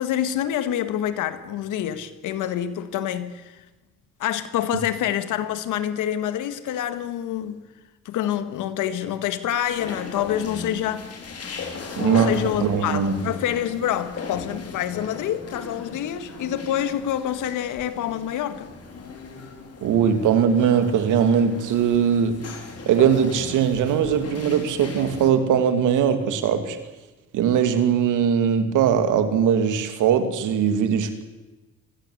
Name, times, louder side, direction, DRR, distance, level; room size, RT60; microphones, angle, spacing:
voice 1, 0.0-3.6 4.2-7.6 8.1-11.0 12.0-18.7, left 11 dB, 90° left, 1.8 m, -27 dB
sound 1, 9.7-25.3, left 4 dB, 55° left, 4.7 m, -37 dB
voice 2, 12.0-12.3 12.6-13.1 19.8-22.4 22.9-26.8 27.3-31.2, right 8 dB, 85° right, 2.6 m, -20 dB
24.0 x 16.0 x 8.1 m
cardioid pair, 90°, 30 cm